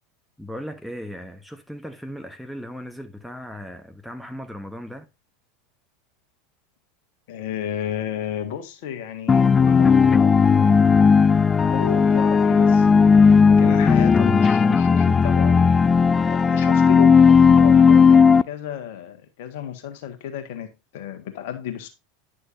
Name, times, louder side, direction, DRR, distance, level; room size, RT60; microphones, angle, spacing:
voice 1, 0.4-5.1, equal, ahead, 1.2 m, -37 dB
voice 2, 7.3-11.2 11.6-12.9 13.1-15.7 16.2-21.9, left 9 dB, 60° left, 1.6 m, -33 dB
sound 1, 9.3-18.4, left 5 dB, 20° left, 0.4 m, -15 dB
10.0 x 6.4 x 2.7 m
figure-of-eight pair, 80°, 0 cm